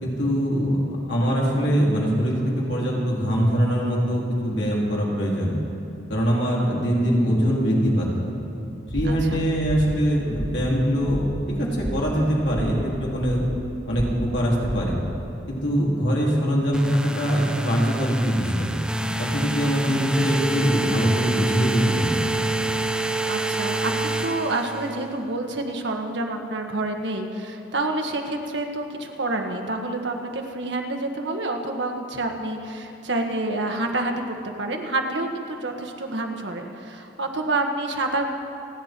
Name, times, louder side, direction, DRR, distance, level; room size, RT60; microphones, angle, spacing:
voice 1, 0.0-5.5 6.1-8.3 8.9-13.4 13.8-15.0 15.5-18.7 19.2-22.1, equal, 65° left, -4 dB, 3.3 m, -23 dB
sound 1, 8.8-15.2, equal, 85° right, 2.4 m, -33 dB
voice 2, 9.1-9.5 19.8-20.1 23.2-38.3, right 2 dB, 70° right, 3 dB, 1.4 m, -28 dB
sound 2, 16.7-25.1, right 2 dB, 5° right, 0.6 m, -27 dB
29.0 x 10.0 x 4.5 m, 2.7 s
head